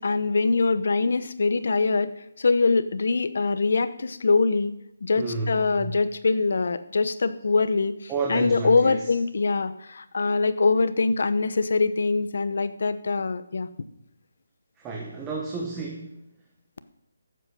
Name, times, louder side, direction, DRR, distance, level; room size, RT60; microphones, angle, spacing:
voice 1, 0.0-4.7 5.0-13.7, left 4 dB, 55° left, 13 dB, 0.9 m, -23 dB
voice 2, 5.2-5.9 8.1-9.1 14.8-16.2, right 4 dB, 10° right, -1 dB, 1.0 m, -31 dB
14.5 x 7.8 x 6.5 m, 0.81 s
hypercardioid pair, 175°, 0 cm